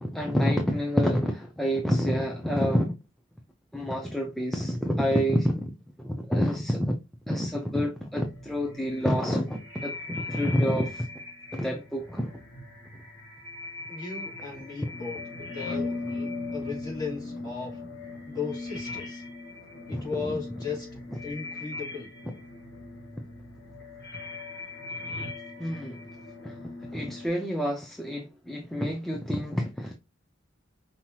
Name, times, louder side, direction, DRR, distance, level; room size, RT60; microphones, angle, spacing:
voice 1, 0.0-2.9 3.7-5.7 6.0-7.0 7.3-11.0 11.5-12.3 19.9-20.3 25.6-26.0 26.4-26.6 26.9-29.9, equal, ahead, 0.5 m, -28 dB
sound 1, 8.2-27.3, left 3 dB, 60° left, 1.9 m, -39 dB
voice 2, 13.9-17.8 18.3-19.2 19.9-22.1, left 5 dB, 20° left, 2.5 m, -36 dB
5.6 x 2.8 x 2.9 m
head